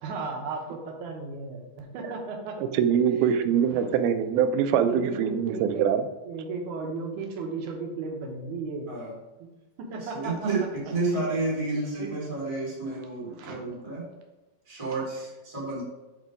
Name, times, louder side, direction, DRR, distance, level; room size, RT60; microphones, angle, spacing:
voice 1, 0.0-2.5 2.9-3.4 3.7-3.9 4.7-8.9 9.9-10.5 11.1-11.3 12.0-12.1 12.9-13.0 13.3-13.6, right 4 dB, 70° right, 2 dB, 2.1 m, -35 dB
voice 2, 2.6-6.0, right 8 dB, 85° right, 9 dB, 2.4 m, -23 dB
voice 3, 10.0-10.6 10.9-14.0 14.7-15.8, right 3 dB, 10° right, -6 dB, 1.6 m, -30 dB
6.7 x 4.8 x 4.8 m, 1.1 s
omnidirectional pair, 4.4 m